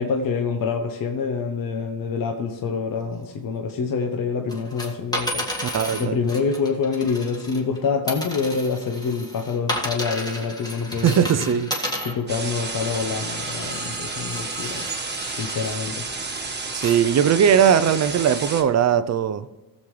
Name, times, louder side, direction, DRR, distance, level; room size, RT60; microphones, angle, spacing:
voice 1, 0.0-11.6 12.0-14.8 15.4-16.0, left 5 dB, 50° left, 1.1 m, -26 dB
sound 1, 4.5-7.8 8.1-15.8 16.3-17.0 17.5-17.6, equal, 10° left, 1.8 m, -33 dB
voice 2, 5.6-6.2 11.0-11.7 16.7-19.5, right 8 dB, 40° right, 0.6 m, -19 dB
sound 2, 12.3-18.6, right 4 dB, 20° right, 1.4 m, -31 dB
17.5 x 7.4 x 3.2 m
cardioid pair, 125°, 45 cm